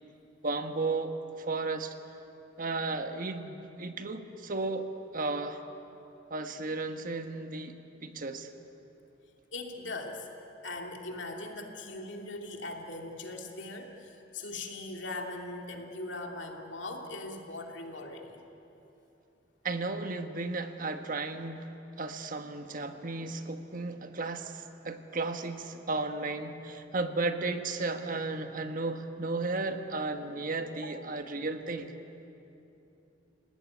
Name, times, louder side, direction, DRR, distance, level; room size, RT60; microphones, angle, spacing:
voice 1, 0.4-1.2 1.5-1.9 2.6-5.6 6.3-7.8 8.0-8.5 19.6-21.7 22.0-31.9, right 3 dB, 45° right, 7 dB, 1.4 m, -34 dB
voice 2, 9.5-10.3 10.6-18.4 30.7-30.9, left 2 dB, 70° left, 2 dB, 2.9 m, -40 dB
30.0 x 18.0 x 9.7 m, 3.0 s
head